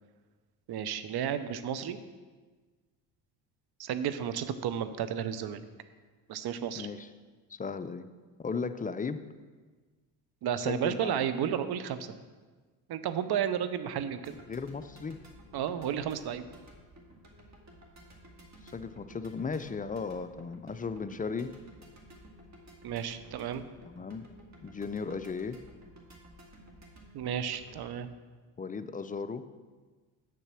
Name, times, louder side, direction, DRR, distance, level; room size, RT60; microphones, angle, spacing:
voice 1, 0.7-2.0 3.8-5.6 6.3-6.9 10.4-12.2 12.9-14.4 15.5-16.4 22.8-23.6 27.1-28.1, right 9 dB, 50° right, 11 dB, 0.8 m, -32 dB
voice 2, 6.7-7.1 7.5-8.1 8.4-9.2 10.6-11.2 14.5-15.2 18.6-21.5 23.9-24.3 24.6-25.6 28.6-29.4, left 5 dB, 20° left, 11 dB, 0.4 m, -36 dB
sound 1, 14.2-28.0, right 1 dB, 35° right, 2.1 m, -54 dB
6.9 x 6.6 x 6.0 m, 1.4 s
hypercardioid pair, 55°, 48 cm